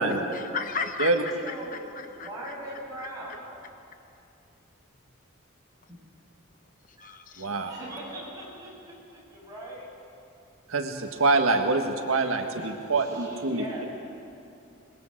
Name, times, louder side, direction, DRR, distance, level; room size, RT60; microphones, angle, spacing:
voice 1, 0.3-3.4 6.9-7.5, left 5 dB, 40° left, 6 dB, 1.0 m, -36 dB
voice 2, 1.4-1.9 2.2-3.4 5.9-6.0 7.6-9.9 12.2-13.9, right 1 dB, 15° right, -5 dB, 7.8 m, -41 dB
voice 3, 7.4-7.7 10.7-13.9, right 3 dB, 90° right, 4 dB, 1.7 m, -25 dB
27.0 x 21.0 x 7.9 m, 2.7 s
head